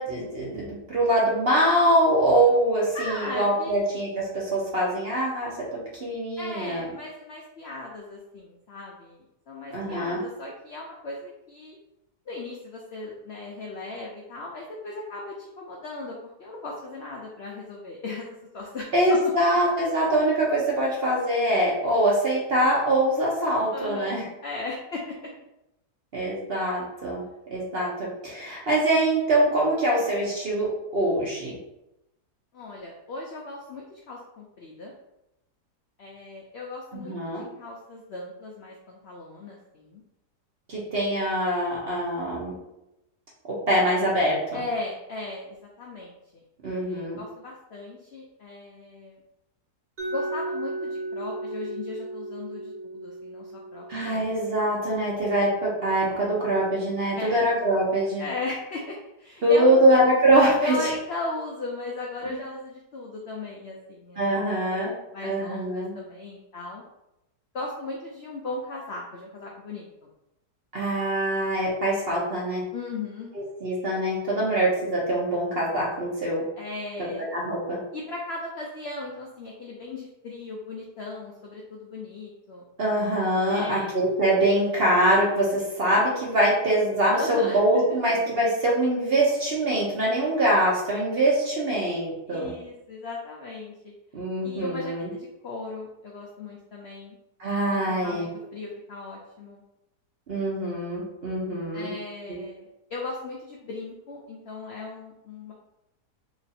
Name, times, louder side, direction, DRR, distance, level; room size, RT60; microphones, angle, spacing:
voice 1, 0.0-6.9 9.7-10.2 18.9-24.2 26.1-27.2 27.5-31.6 36.9-37.4 40.7-42.5 43.7-44.4 46.6-47.2 53.9-58.2 59.4-60.7 62.3-62.4 64.2-64.9 65.2-65.9 70.7-72.6 73.3-76.4 77.0-77.8 82.8-92.5 94.1-95.1 97.4-98.3 100.3-101.9, right 1 dB, 50° right, -4 dB, 0.7 m, -23 dB
voice 2, 2.9-3.9 6.4-11.8 12.3-19.2 23.7-24.1 24.4-25.3 32.5-34.9 36.0-40.0 44.5-49.2 50.1-54.4 57.1-57.6 58.2-59.9 60.6-64.5 64.7-66.8 67.5-69.9 72.7-73.3 76.6-77.3 77.9-82.6 83.5-84.0 87.1-87.6 88.2-88.3 92.3-93.9 94.4-97.2 97.7-99.6 101.7-105.5, left 2 dB, 80° left, -2 dB, 0.5 m, -37 dB
Mallet percussion, 50.0-55.8, right 2 dB, 75° right, 0.4 m, -36 dB
3.0 x 2.5 x 4.0 m, 0.89 s
omnidirectional pair, 1.7 m